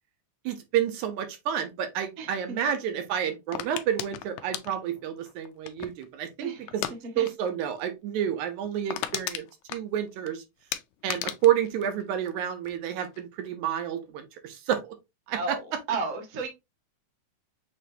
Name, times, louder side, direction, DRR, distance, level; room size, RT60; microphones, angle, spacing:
voice 1, 0.5-6.8 7.2-9.5 9.7-10.4 11.0-14.9 15.3-15.8, right 10 dB, 75° right, 2.0 m, -29 dB
sound 1, 3.5-6.1 6.7-7.0 7.3-7.5 7.8-7.9 8.3-8.4 8.6-10.3 10.7-12.7 13.0-13.5, left 13 dB, 80° left, 1.8 m, -35 dB
voice 2, 15.9-16.5, right 4 dB, 55° right, 0.8 m, -31 dB
6.5 x 3.0 x 2.6 m
omnidirectional pair, 3.7 m